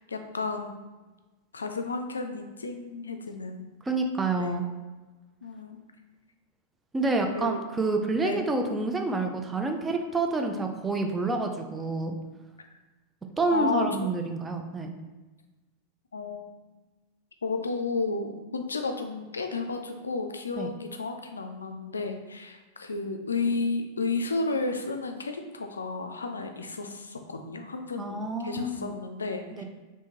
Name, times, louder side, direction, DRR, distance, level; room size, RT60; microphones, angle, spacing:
voice 1, 0.1-0.8 1.5-3.7 4.4-4.6 5.4-5.8 7.3-7.6 8.2-8.4 13.5-14.1 16.1-16.5 17.4-29.6, left 3 dB, 85° left, 5 dB, 0.3 m, -32 dB
voice 2, 3.9-4.6 6.9-12.2 13.4-14.9 20.6-20.7 28.0-29.0 29.5-29.6, right 3 dB, 15° right, 4 dB, 0.5 m, -28 dB
3.5 x 3.0 x 2.9 m, 1.2 s
figure-of-eight pair, 95°, 0 cm